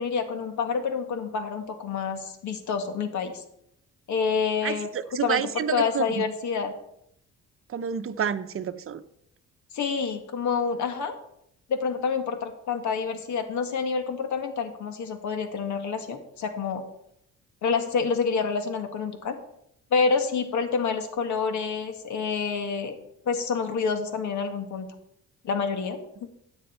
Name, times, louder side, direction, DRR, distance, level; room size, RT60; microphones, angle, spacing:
voice 1, 0.0-3.4 4.1-4.9 5.2-5.4 5.7-6.7 9.7-11.1 11.7-16.8 17.6-19.4 19.9-23.0 23.3-24.9 25.4-26.3, left 5 dB, 70° left, 1.9 m, -28 dB
voice 2, 4.6-6.2 7.7-9.0, right 8 dB, 45° right, 0.9 m, -29 dB
13.5 x 9.0 x 4.4 m
cardioid pair, 90°, 30 cm